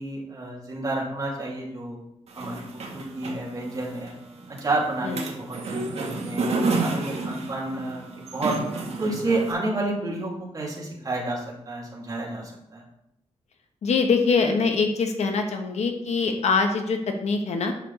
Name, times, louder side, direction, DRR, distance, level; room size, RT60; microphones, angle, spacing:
voice 1, 0.0-2.0 2.4-4.1 4.5-8.0 8.3-8.6 9.0-12.8, right 2 dB, 30° right, -4 dB, 3.0 m, -30 dB
sound 1, 2.3-9.5, right 3 dB, 70° right, 1.7 m, -31 dB
voice 2, 13.8-17.7, left 4 dB, 80° left, 5 dB, 1.3 m, -23 dB
8.5 x 6.6 x 4.2 m, 0.82 s
wide cardioid pair, 105°, 11 cm